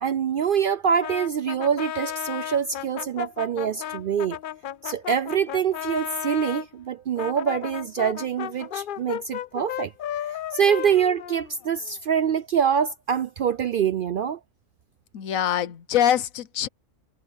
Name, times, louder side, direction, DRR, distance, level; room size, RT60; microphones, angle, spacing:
voice 1, 0.0-4.4 4.8-9.9 10.3-14.4, right 7 dB, 65° right, 0.5 m, -25 dB
Brass instrument, 1.0-6.6 7.2-11.9, left 11 dB, 70° left, 0.5 m, -34 dB
voice 2, 15.1-16.7, left 10 dB, 90° left, 1.3 m, -24 dB
omnidirectional pair, 1.4 m